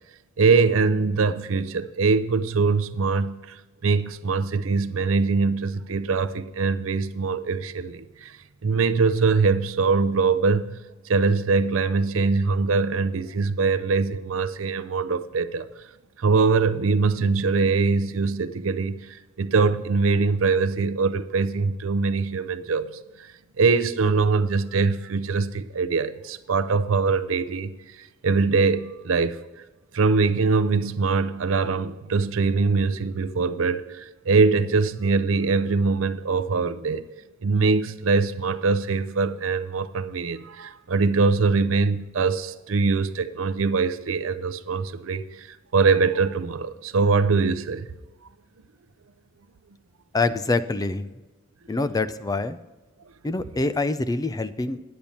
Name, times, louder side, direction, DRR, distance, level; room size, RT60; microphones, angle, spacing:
voice 1, 0.4-8.3 8.6-10.8 11.1-15.7 16.2-23.3 23.6-29.4 29.9-37.0 37.4-47.9, right 4 dB, 75° right, 0.6 m, -23 dB
voice 2, 50.1-51.1 51.7-52.6 53.2-54.8, left 3 dB, 20° left, 0.4 m, -25 dB
10.5 x 8.6 x 4.2 m
head